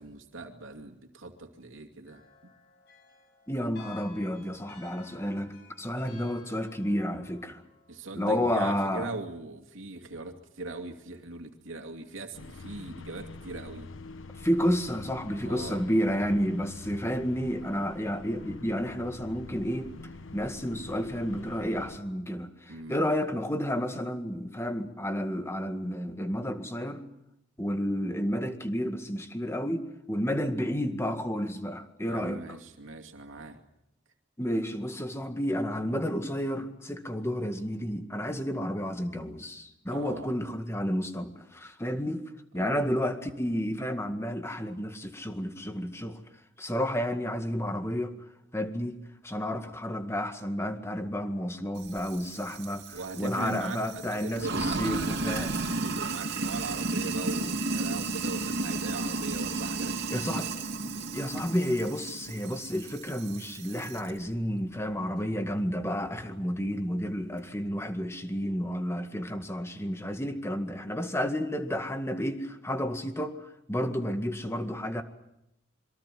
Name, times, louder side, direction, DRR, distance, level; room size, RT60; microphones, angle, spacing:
voice 1, 0.0-2.5 7.9-13.9 15.4-15.8 22.7-23.0 32.1-33.6 39.9-40.3 42.5-42.9 52.9-54.8 55.7-60.5, right 2 dB, 90° right, 2.6 m, -40 dB
sound 1, 2.1-8.3, left 5 dB, 60° left, 7.6 m, -55 dB
voice 2, 3.5-7.6 8.2-9.1 14.3-19.9 20.3-27.1 27.6-32.6 34.4-42.2 42.5-46.2 46.6-48.2 48.5-49.0 49.2-55.6 60.1-60.5 61.1-75.0, equal, 15° left, 1.9 m, -31 dB
sound 2, 12.3-22.0, left 3 dB, 90° left, 0.9 m, -45 dB
Sink (filling or washing), 51.8-64.1, right 3 dB, 60° right, 2.9 m, -33 dB
27.0 x 23.0 x 7.7 m
head